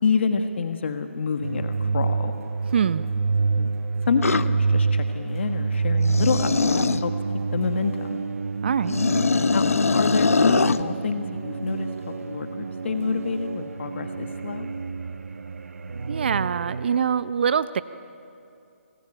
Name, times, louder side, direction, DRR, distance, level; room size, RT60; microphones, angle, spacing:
voice 1, 0.0-2.3 3.6-3.8 4.1-7.1 7.5-8.2 9.5-14.7, left 5 dB, 55° left, 7 dB, 1.5 m, -28 dB
sound 1, 1.4-17.0, right 4 dB, 75° right, 1.1 m, -28 dB
voice 2, 2.7-3.0 8.6-8.9 16.1-17.8, right 7 dB, 45° right, 15 dB, 0.6 m, -24 dB
sound 2, 4.2-4.5 6.0-7.0 8.8-10.8, left 4 dB, 85° left, 0.9 m, -22 dB
27.0 x 19.5 x 8.9 m, 2.7 s
hypercardioid pair, 160°, 8 cm